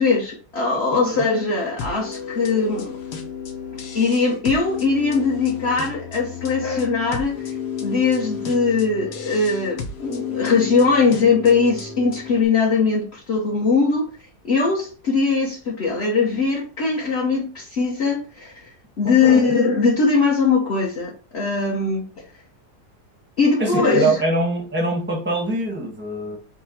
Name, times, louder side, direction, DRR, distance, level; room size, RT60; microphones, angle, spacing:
voice 1, 0.0-2.9 3.9-14.0 14.4-18.6 19.0-22.0 23.4-24.2, left 4 dB, 45° left, 1.2 m, -20 dB
voice 2, 0.7-1.2 19.3-19.5 23.6-26.4, right 2 dB, 10° right, 0.8 m, -24 dB
sound 1, 1.8-12.4, left 7 dB, 85° left, 1.4 m, -32 dB
5.6 x 2.2 x 4.3 m
omnidirectional pair, 1.7 m